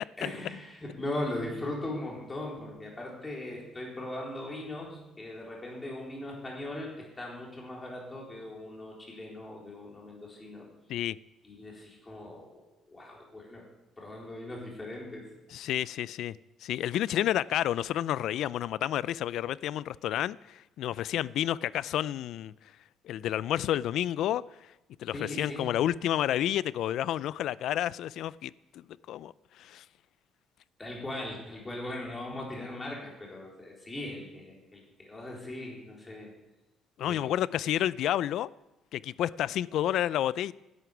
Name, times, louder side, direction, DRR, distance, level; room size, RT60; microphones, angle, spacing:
voice 1, 0.2-10.7 11.4-13.7 14.0-15.3 25.1-25.8 30.8-36.3 37.0-37.3, left 1 dB, 15° left, 4.1 m, -39 dB
voice 2, 15.5-16.3 16.6-22.5 23.0-24.4 25.0-29.3 29.6-29.8 37.0-38.5 38.9-40.5, left 12 dB, 70° left, 0.3 m, -30 dB
11.0 x 9.3 x 8.1 m
cardioid pair, 125°, 0 cm